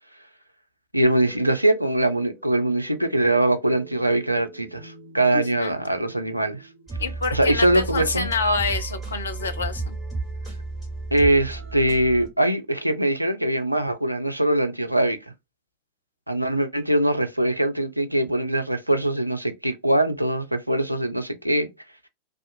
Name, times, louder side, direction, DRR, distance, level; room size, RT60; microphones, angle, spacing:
voice 1, 0.9-6.6 7.3-8.3 11.1-15.2 16.3-21.7, right 1 dB, 90° right, 0.4 m, -22 dB
sound 1, 1.0-12.3, right 3 dB, 20° right, 1.6 m, -35 dB
voice 2, 5.3-5.8 7.0-10.0, left 3 dB, 70° left, 0.6 m, -27 dB
2.4 x 2.3 x 2.6 m
figure-of-eight pair, 90°, 0 cm